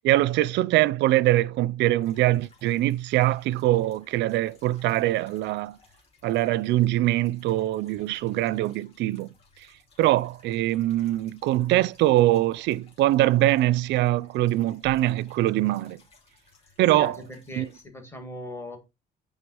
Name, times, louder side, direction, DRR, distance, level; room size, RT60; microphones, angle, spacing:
voice 1, 0.0-5.8 6.2-9.3 10.0-16.0 16.8-17.1 17.6-17.7, right 15 dB, 65° right, 0.4 m, -23 dB
sound 1, 2.0-17.9, left 3 dB, 30° left, 2.5 m, -59 dB
voice 2, 16.9-18.8, left 1 dB, 10° left, 1.8 m, -38 dB
8.7 x 3.6 x 6.2 m
cardioid pair, 180°, 19 cm